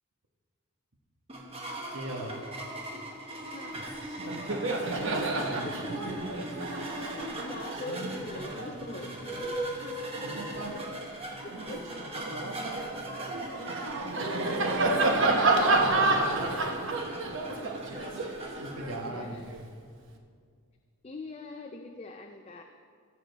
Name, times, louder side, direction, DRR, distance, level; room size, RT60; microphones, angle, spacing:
sound 1, 1.3-19.1, right 1 dB, 25° right, 1.1 m, -40 dB
voice 1, 1.9-2.3 5.0-6.2 10.2-10.8 11.5-12.9 17.9-18.0 18.6-19.5, right 1 dB, 75° right, 2 dB, 1.3 m, -39 dB
Laughter, 3.7-3.9 4.2-10.9 11.4-19.6, right 2 dB, 55° right, 0.9 m, -30 dB
voice 2, 5.3-5.7 7.4-9.6 10.0-10.1 11.4-11.8 14.2-17.1 17.7-18.1 18.9-19.4 21.0-22.6, left 2 dB, 30° left, 4 dB, 0.4 m, -43 dB
15.5 x 7.5 x 4.0 m, 2.1 s
head